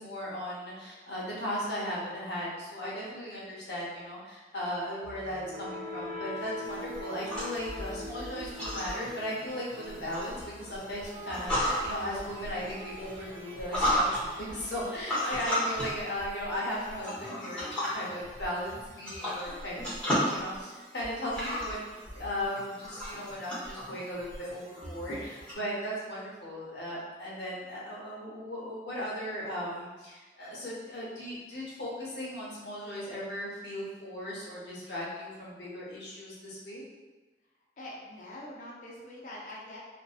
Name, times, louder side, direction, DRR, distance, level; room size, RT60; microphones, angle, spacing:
voice 1, 0.0-21.9 22.1-36.8, equal, 80° left, -6 dB, 0.8 m, -37 dB
sound 1, 5.0-16.9, left 1 dB, 40° right, 0.5 m, -44 dB
sound 2, 6.6-25.5, equal, 5° left, 0.7 m, -35 dB
voice 2, 37.8-39.8, left 1 dB, 45° left, -3 dB, 0.4 m, -44 dB
2.6 x 2.2 x 2.4 m, 1.3 s
head